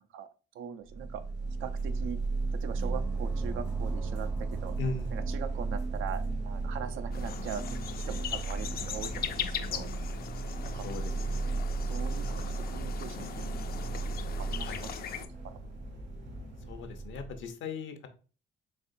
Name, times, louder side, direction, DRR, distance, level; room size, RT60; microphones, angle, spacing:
voice 1, 0.5-1.2 1.6-2.2 2.6-4.8 5.1-7.6 8.0-9.9 10.6-10.8 11.9-13.3 14.0-14.1 14.4-14.9, right 8 dB, 80° right, 10 dB, 0.5 m, -41 dB
sound 1, 0.9-17.4, right 3 dB, 65° right, 1.2 m, -35 dB
Gong, 2.7-7.9, right 3 dB, 5° right, 0.5 m, -47 dB
voice 2, 4.8-5.1 10.8-11.1 11.4-11.6 14.6-14.8 16.7-18.1, left 4 dB, 75° left, 7 dB, 0.7 m, -38 dB
sound 2, 7.1-15.3, left 8 dB, 50° left, 0.4 m, -40 dB
4.1 x 3.3 x 2.6 m, 0.36 s
cardioid pair, 90°, 20 cm